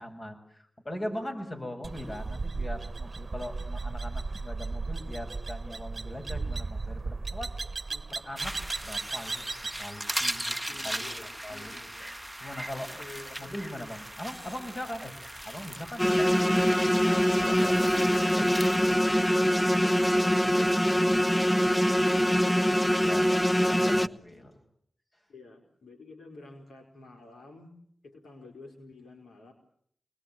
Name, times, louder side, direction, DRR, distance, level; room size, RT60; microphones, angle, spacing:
voice 1, 0.0-7.5 8.2-8.6 8.8-9.5 9.8-11.7 12.0-12.1 12.4-15.1 15.5-16.8 17.1-18.6 23.0-24.5, left 1 dB, 40° left, 4 dB, 7.4 m, -40 dB
sound 1, 1.8-9.8, right 3 dB, 55° right, 1.1 m, -35 dB
voice 2, 7.9-8.2 10.7-12.1 12.8-13.8 24.3-24.6 25.3-27.7 28.0-29.5, left 3 dB, 90° left, 2 dB, 4.7 m, -49 dB
sound 2, 8.4-19.0, right 1 dB, 5° right, 1.1 m, -38 dB
sound 3, 16.0-24.1, equal, 20° left, 1.1 m, -23 dB
28.5 x 21.0 x 9.3 m, 0.68 s
cardioid pair, 40°, 0 cm